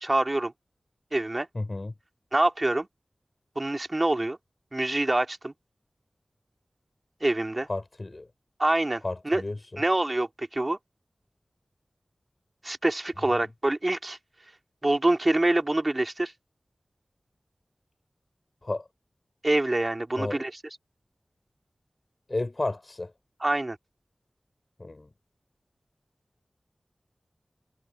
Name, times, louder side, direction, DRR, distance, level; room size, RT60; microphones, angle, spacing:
voice 1, 0.0-0.5 1.1-1.5 2.3-2.9 3.6-4.4 4.7-5.5 7.2-7.7 8.6-9.4 9.8-10.8 12.6-14.2 14.8-16.3 19.4-20.6 23.4-23.8, right 2 dB, 35° right, 2.2 m, -25 dB
voice 2, 1.5-1.9 7.7-8.3 9.0-9.8 18.6-18.8 20.1-20.4 22.3-23.1 24.8-25.1, left 2 dB, 45° left, 4.6 m, -32 dB
wide cardioid pair, 45°, 0 cm